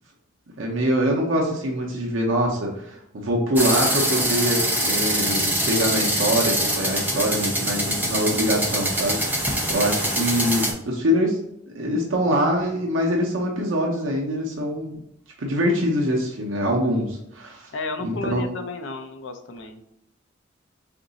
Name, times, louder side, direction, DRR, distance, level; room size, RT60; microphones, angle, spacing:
voice 1, 0.6-11.4 11.7-15.0 15.4-17.7 18.0-18.6, equal, 80° right, -2 dB, 0.7 m, -24 dB
sound 1, 3.6-10.7, right 1 dB, 10° right, 0.6 m, -24 dB
voice 2, 7.1-7.5 17.7-19.9, left 3 dB, 70° left, 7 dB, 0.5 m, -33 dB
3.8 x 2.6 x 3.9 m, 0.77 s
head